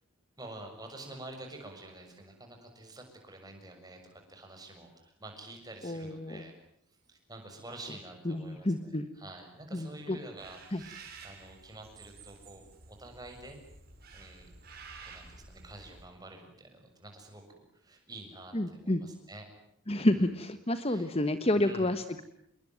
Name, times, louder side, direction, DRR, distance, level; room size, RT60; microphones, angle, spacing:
voice 1, 0.4-6.5 7.1-13.6 14.1-14.5 15.0-19.5 20.1-20.4 20.9-21.1 21.5-21.9, right 2 dB, 15° right, 3 dB, 6.9 m, -48 dB
voice 2, 5.8-6.4 8.2-9.1 9.7-10.2 10.7-10.8 18.5-19.0 19.9-22.2, left 1 dB, 25° left, 10 dB, 1.2 m, -29 dB
sound 1, 10.4-16.0, right 4 dB, 45° right, 6.5 m, -51 dB
28.0 x 22.0 x 9.3 m, 0.72 s
head